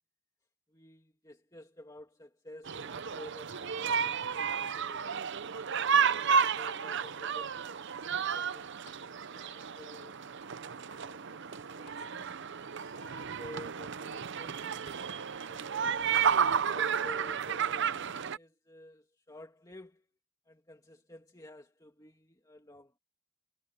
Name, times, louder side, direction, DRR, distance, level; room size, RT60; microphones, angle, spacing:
voice 1, 0.7-5.4 6.2-10.2 10.9-12.6 12.9-14.9 15.4-16.0 16.7-20.1 20.5-23.0, left 1 dB, 15° left, 2.4 m, -52 dB
sound 1, 2.6-18.4, right 6 dB, 55° right, 0.6 m, -32 dB
sound 2, 5.9-6.8 8.9-9.7 10.0-10.1 11.9-12.7 14.9-15.6 16.3-16.4, left 4 dB, 80° left, 3.5 m, -62 dB
head